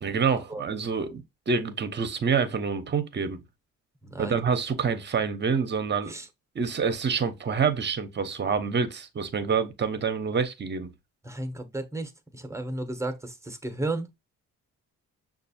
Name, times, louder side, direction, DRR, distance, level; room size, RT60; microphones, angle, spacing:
voice 1, 0.0-3.4 4.2-6.1 6.5-10.9, right 5 dB, 35° right, 0.8 m, -27 dB
voice 2, 4.0-4.4 6.1-6.3 11.2-14.1, right 2 dB, 10° right, 0.9 m, -33 dB
5.9 x 2.5 x 2.7 m
cardioid pair, 90°, 30 cm